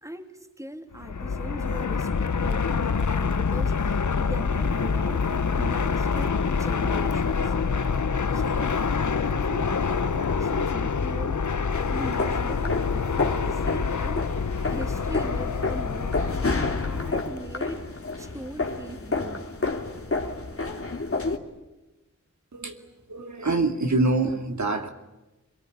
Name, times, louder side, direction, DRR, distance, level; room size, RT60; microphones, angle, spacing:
voice 1, 0.0-5.3 5.6-7.5 8.3-8.8 9.2-11.4 11.9-19.6, right 1 dB, 10° right, 6 dB, 2.9 m, -40 dB
Fixed-wing aircraft airplane, 1.0-17.4, left 5 dB, 70° left, 1.1 m, -26 dB
sound 1, 11.7-21.4, left 3 dB, 45° left, 2.7 m, -30 dB
voice 2, 23.1-24.9, right 2 dB, 65° right, 5 dB, 2.4 m, -25 dB
24.0 x 23.5 x 9.8 m, 1.0 s
wide cardioid pair, 80°, 31 cm